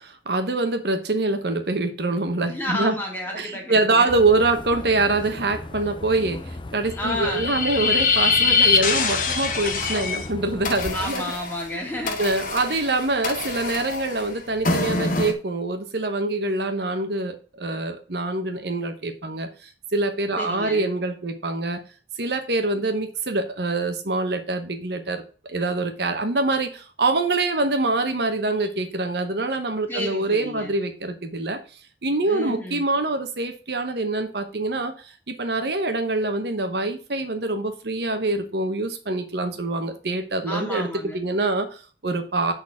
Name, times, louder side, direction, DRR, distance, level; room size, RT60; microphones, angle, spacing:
voice 1, 0.0-3.0 3.3-11.2 12.2-21.8 22.2-25.2 25.5-31.6 32.0-40.9 41.1-42.5, right 2 dB, 65° right, 6 dB, 1.0 m, -25 dB
voice 2, 2.5-4.2 6.2-6.4 7.0-7.5 9.3-9.4 10.9-12.2 20.4-20.9 29.9-30.7 32.2-32.8 40.5-41.2, left 1 dB, 10° left, -1 dB, 2.1 m, -31 dB
sound 1, 4.1-11.1, left 2 dB, 25° left, 0.5 m, -37 dB
sound 2, 7.0-10.3 10.6-15.3, left 4 dB, 50° left, 1.0 m, -24 dB
6.5 x 4.1 x 6.0 m, 0.37 s
head